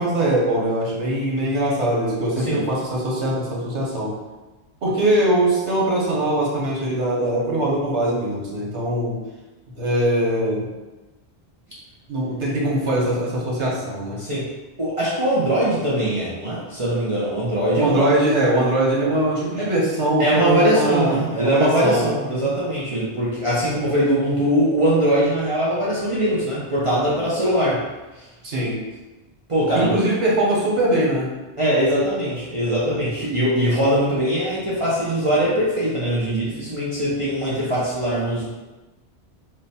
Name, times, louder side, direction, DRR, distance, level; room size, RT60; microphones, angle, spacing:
voice 1, 0.0-4.1 4.8-9.2 9.7-10.7 12.1-14.2 17.8-22.5 28.4-28.8 29.7-31.3, right 1 dB, 85° right, -4 dB, 1.3 m, -21 dB
voice 2, 14.8-18.1 20.2-27.8 29.5-29.9 31.6-38.5, equal, 35° right, -8 dB, 0.6 m, -21 dB
3.2 x 2.1 x 4.1 m, 1.1 s
omnidirectional pair, 1.1 m